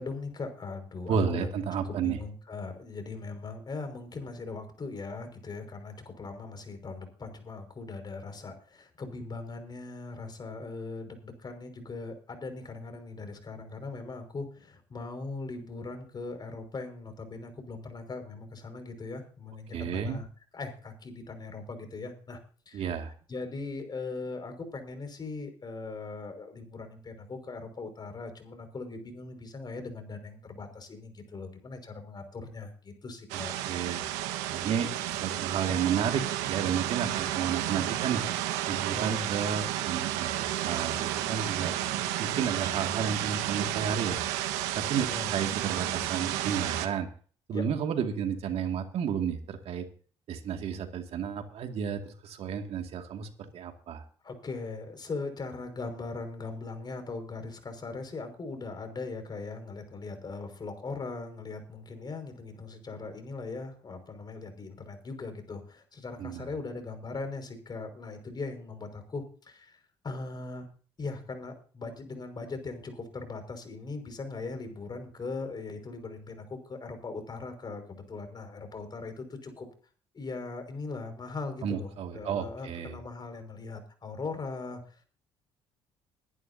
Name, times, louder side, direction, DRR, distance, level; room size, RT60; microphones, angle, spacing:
voice 1, 0.0-1.5 1.8-20.3 20.5-22.4 22.7-22.9 23.3-33.6 38.9-39.3 44.9-45.3 47.5-47.6 54.2-69.8 70.0-70.7 71.0-79.7 80.1-85.0, left 3 dB, 35° left, 6 dB, 5.7 m, -40 dB
voice 2, 1.1-2.2 19.7-20.2 22.7-23.1 33.3-34.0 34.5-38.2 38.7-41.7 42.2-44.2 44.8-45.1 45.3-47.1 47.5-49.9 50.3-54.0 66.2-66.5 81.6-83.0, right 7 dB, 60° right, 5 dB, 2.3 m, -32 dB
sound 1, 33.3-46.9, right 13 dB, 85° right, 1.6 m, -32 dB
21.5 x 11.0 x 2.8 m, 0.41 s
supercardioid pair, 65°, 12 cm